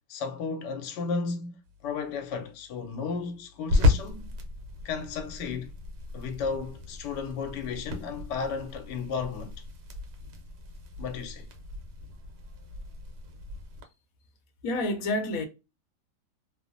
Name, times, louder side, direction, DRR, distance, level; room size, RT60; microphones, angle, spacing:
voice 1, 0.1-4.3 4.8-5.7 6.1-9.5 11.0-11.5, left 5 dB, 90° left, 1.3 m, -34 dB
sound 1, 1.6-13.8, left 3 dB, 80° right, 1.3 m, -33 dB
voice 2, 14.6-15.5, left 2 dB, 65° left, 1.0 m, -28 dB
3.0 x 2.0 x 2.5 m
omnidirectional pair, 1.8 m